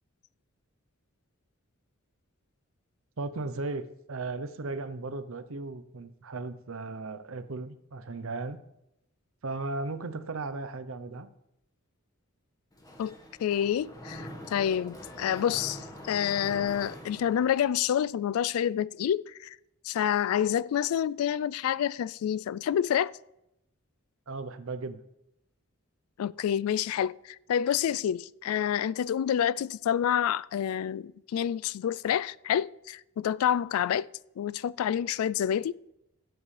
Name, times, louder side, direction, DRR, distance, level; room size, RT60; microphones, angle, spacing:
voice 1, 3.2-8.6 9.4-11.3 24.3-25.0, right 3 dB, 70° right, 0.7 m, -36 dB
Mechanisms, 12.7-17.9, equal, 15° left, 1.4 m, -44 dB
voice 2, 13.4-19.6 19.8-23.1 26.2-34.1 34.4-35.9, left 9 dB, 85° left, 0.3 m, -28 dB
16.5 x 7.8 x 3.3 m
head